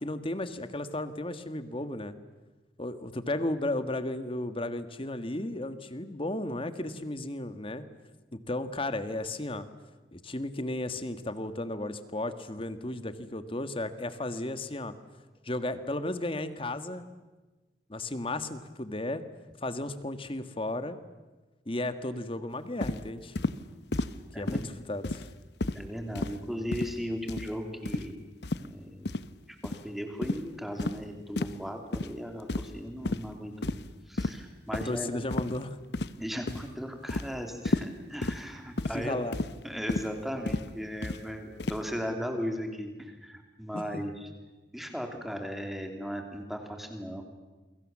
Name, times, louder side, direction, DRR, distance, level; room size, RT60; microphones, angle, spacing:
voice 1, 0.0-2.1 2.8-7.8 8.3-9.7 10.1-14.9 15.4-17.1 17.9-19.2 19.6-21.0 21.7-23.4 24.4-25.2 34.8-35.8 38.9-39.4 43.7-43.8, left 1 dB, 30° left, 11 dB, 1.5 m, -34 dB
sound 1, 22.8-23.0 23.4-23.6 23.9-24.2 24.5-24.7 25.0-25.3 25.6-25.8 26.2-26.4 26.7-27.0 27.3-27.5 27.9-28.1 28.4-28.7 29.1-29.3 29.6-29.8 30.2-30.4 30.8-31.0 31.4-31.6 31.9-32.1 32.5-32.8 33.0-33.2 33.6-33.9 34.2-34.4 34.7-34.9 35.3-35.6 35.9-36.2 36.5-36.7 37.1-37.3 37.7-37.9 38.2-38.4 38.8-39.0 39.3-39.5 39.9-40.1 40.5-40.7 41.0-41.2 41.6-41.8, left 2 dB, 70° left, 0.9 m, -31 dB
voice 2, 24.3-24.7 25.7-28.2 28.6-29.1 29.6-35.2 36.2-39.2 39.6-44.3 44.7-47.2, equal, ahead, 4 dB, 3.2 m, -37 dB
29.0 x 23.0 x 7.4 m, 1.2 s
head